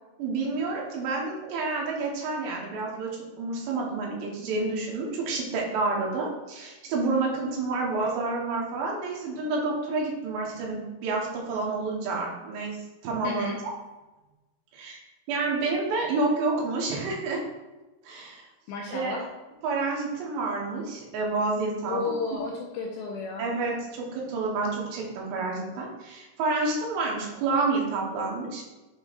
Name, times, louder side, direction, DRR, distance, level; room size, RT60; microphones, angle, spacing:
voice 1, 0.2-12.8 13.0-13.7 14.7-15.0 15.3-17.4 18.0-18.4 18.9-19.1 19.6-22.4 23.4-28.6, right 3 dB, 80° right, -2 dB, 3.6 m, -29 dB
voice 2, 13.2-13.6 18.7-19.3 21.9-23.4, left 4 dB, 80° left, 0 dB, 2.3 m, -32 dB
8.8 x 3.6 x 4.2 m, 1.1 s
omnidirectional pair, 4.9 m